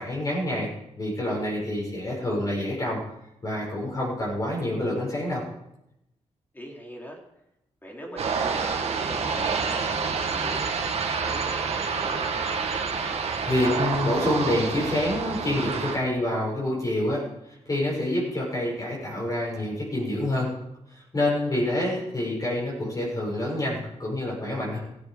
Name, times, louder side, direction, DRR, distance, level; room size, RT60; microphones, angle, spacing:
voice 1, 0.0-3.0 3.4-5.4 13.4-17.2 17.7-20.5 20.9-24.8, left 1 dB, 30° left, -4 dB, 6.8 m, -27 dB
voice 2, 6.5-7.2 7.8-10.7 11.1-12.7, equal, 15° left, -1 dB, 4.1 m, -42 dB
sound 1, 8.2-16.0, right 5 dB, 60° right, 2.3 m, -28 dB
16.5 x 14.0 x 5.3 m, 0.85 s
wide cardioid pair, 115°, 12 cm